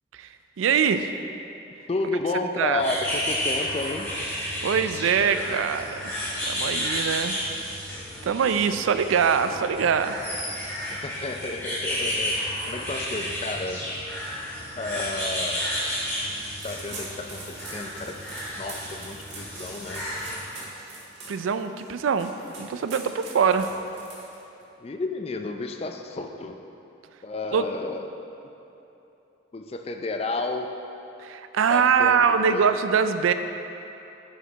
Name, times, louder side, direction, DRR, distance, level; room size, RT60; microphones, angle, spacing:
voice 1, 0.6-1.1 2.6-2.8 4.6-7.4 8.2-10.2 14.3-14.4 21.3-23.7 27.5-27.7 31.2-33.3, right 6 dB, 85° right, 10 dB, 0.4 m, -23 dB
voice 2, 1.9-4.1 10.9-12.4 12.6-13.8 14.8-15.7 16.6-18.2 18.6-20.4 24.8-26.6 27.2-28.1 29.5-30.7 31.7-32.7, left 2 dB, 30° left, 5 dB, 0.4 m, -32 dB
sound 1, 2.8-20.4, equal, 15° left, 1.8 m, -32 dB
sound 2, 16.6-24.6, right 2 dB, 60° right, 1.8 m, -42 dB
10.0 x 5.1 x 3.9 m, 3.0 s
head